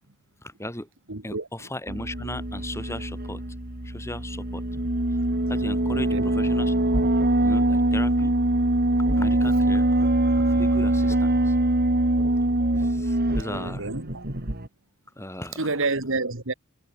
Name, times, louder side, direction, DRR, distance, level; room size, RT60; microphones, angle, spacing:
voice 1, 0.4-0.9 1.2-3.4 3.8-4.6 5.5-6.7 7.4-8.3 9.1-9.9 10.2-11.5 12.8-13.9 15.2-15.7, left 1 dB, 15° left, 7.3 m, -36 dB
voice 2, 1.1-1.7 5.9-6.3 13.5-14.3 15.5-16.5, right 3 dB, 65° right, 2.3 m, -29 dB
sound 1, 1.9-14.7, right 1 dB, 45° right, 2.6 m, -23 dB
head